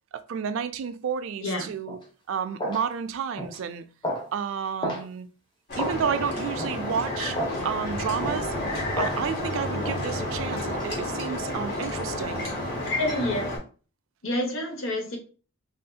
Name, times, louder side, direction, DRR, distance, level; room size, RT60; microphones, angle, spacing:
voice 1, 0.1-2.0 2.3-3.8 4.3-5.3 5.8-7.4 7.6-8.5 9.0-12.5, right 7 dB, 65° right, 0.3 m, -31 dB
steps in high heels, 1.9-2.0 2.6-2.8 3.4-3.6 4.0-4.3 4.8-5.0 5.8-6.0 6.6-6.8 7.3-7.6 8.2-8.4 9.0-9.2 9.8-10.0 10.7-10.9, equal, 20° left, 0.6 m, -31 dB
Storm wind whistling through harbour boat masts, 5.7-13.6, left 1 dB, 50° left, 1.2 m, -31 dB
voice 2, 12.9-13.7 14.2-15.2, left 1 dB, 65° left, 0.9 m, -28 dB
3.4 x 2.7 x 2.3 m
head